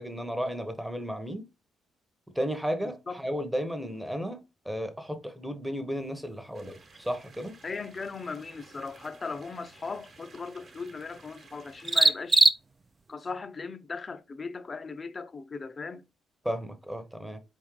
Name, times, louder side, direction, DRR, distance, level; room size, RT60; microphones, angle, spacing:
voice 1, 0.0-1.4 2.3-7.6 16.4-17.4, equal, 5° right, 0.8 m, -34 dB
voice 2, 2.8-3.2 7.6-12.5 13.1-16.0, left 4 dB, 35° left, 0.6 m, -38 dB
sound 1, 5.9-13.1, right 3 dB, 25° right, 0.4 m, -30 dB
sound 2, 6.5-12.1, right 3 dB, 50° right, 1.2 m, -54 dB
4.2 x 3.6 x 3.0 m
cardioid pair, 90°, 0 cm